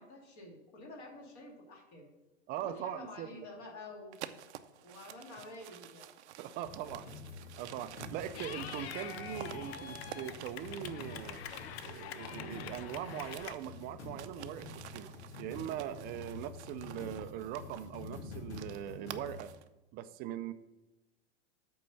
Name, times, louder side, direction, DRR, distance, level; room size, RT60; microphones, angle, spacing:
voice 1, 0.0-2.1 2.6-4.2 4.8-6.1, left 2 dB, 45° left, 0 dB, 2.5 m, -49 dB
voice 2, 2.5-3.3 6.4-7.1 7.6-11.4 11.8-15.1 15.4-19.5 19.9-20.5, right 11 dB, 25° right, 11 dB, 0.5 m, -41 dB
sound 1, 4.1-12.6 12.9-19.7, right 11 dB, 75° right, 0.7 m, -51 dB
sound 2, 6.6-19.4, left 3 dB, 80° left, 2.6 m, -48 dB
Clapping / Cheering, 8.3-13.5, left 10 dB, 65° left, 0.7 m, -45 dB
8.1 x 4.4 x 6.9 m, 1.0 s
hypercardioid pair, 125°, 34 cm